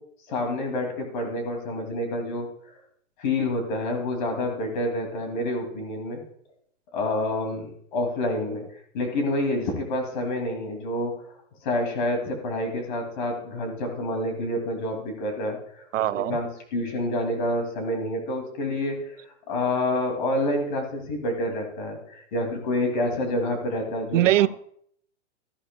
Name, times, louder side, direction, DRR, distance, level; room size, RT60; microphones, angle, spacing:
voice 1, 0.3-2.5 3.2-6.2 6.9-8.6 8.9-11.1 11.6-15.9 16.1-24.5, left 1 dB, 40° left, 2.5 m, -28 dB
voice 2, 15.9-16.4 24.1-24.5, right 14 dB, 90° right, 0.5 m, -21 dB
14.0 x 11.0 x 2.2 m
hypercardioid pair, 175°, 36 cm